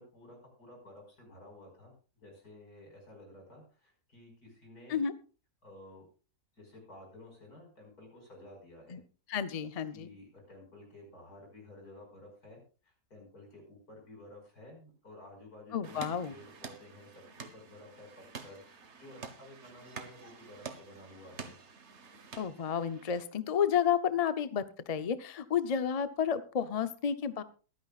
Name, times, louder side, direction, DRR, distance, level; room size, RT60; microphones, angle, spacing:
voice 1, 0.0-5.0 5.6-6.1 6.5-9.0 9.9-18.1 18.4-21.6, left 1 dB, 80° left, 1 dB, 5.9 m, -53 dB
voice 2, 9.3-10.1 15.7-16.3 22.4-27.4, left 8 dB, 45° left, 12 dB, 0.5 m, -31 dB
sound 1, 15.8-23.2, right 5 dB, 50° right, 1.4 m, -48 dB
22.5 x 9.4 x 2.4 m, 0.36 s
omnidirectional pair, 1.6 m